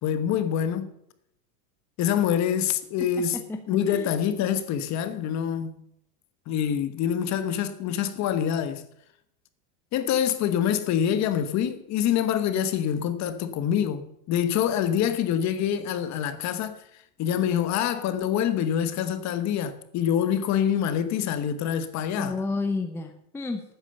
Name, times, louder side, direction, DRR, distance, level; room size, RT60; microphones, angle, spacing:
voice 1, 0.0-0.9 2.0-3.4 3.7-5.7 6.5-8.8 9.9-16.8 17.2-22.3, left 9 dB, 35° left, 1.3 m, -26 dB
voice 2, 3.0-4.1 22.2-23.6, left 3 dB, 5° left, 0.7 m, -31 dB
12.5 x 9.4 x 6.6 m
supercardioid pair, 135°, 48 cm